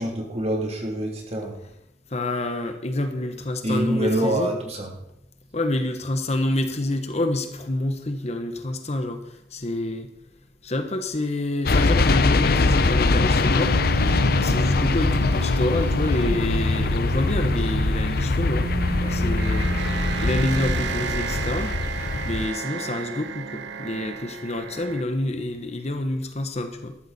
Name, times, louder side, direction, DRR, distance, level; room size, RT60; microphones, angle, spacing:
voice 1, 0.0-1.6 3.6-4.9, right 1 dB, 35° right, 0 dB, 2.9 m, -26 dB
voice 2, 2.1-4.5 5.5-10.1 10.6-13.8 14.3-18.7 19.0-21.8 22.2-27.0, left 1 dB, 40° left, 7 dB, 1.1 m, -27 dB
sound 1, 11.7-22.5, left 3 dB, 60° left, 0.7 m, -22 dB
sound 2, 13.5-25.0, right 4 dB, 80° right, 0.8 m, -32 dB
13.0 x 12.5 x 4.2 m, 0.81 s
head